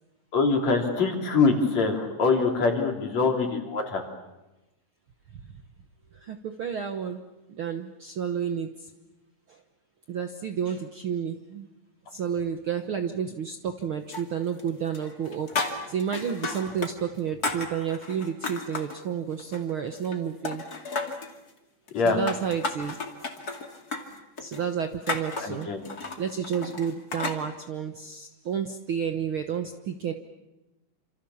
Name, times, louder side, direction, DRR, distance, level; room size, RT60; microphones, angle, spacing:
voice 1, 0.3-4.0 21.9-22.2 25.4-25.8, left 4 dB, 55° left, 3 dB, 4.6 m, -24 dB
voice 2, 6.1-8.9 9.5-9.6 10.1-11.7 12.1-20.6 22.0-23.0 24.4-25.7 26.2-30.1, right 7 dB, 60° right, 7 dB, 1.5 m, -31 dB
sound 1, 14.1-14.7 14.9-16.9 17.2-19.0 19.4-20.2 20.4-21.3 21.9-27.4, left 3 dB, 30° left, 2.6 m, -33 dB
28.0 x 27.0 x 7.2 m, 1.0 s
omnidirectional pair, 3.7 m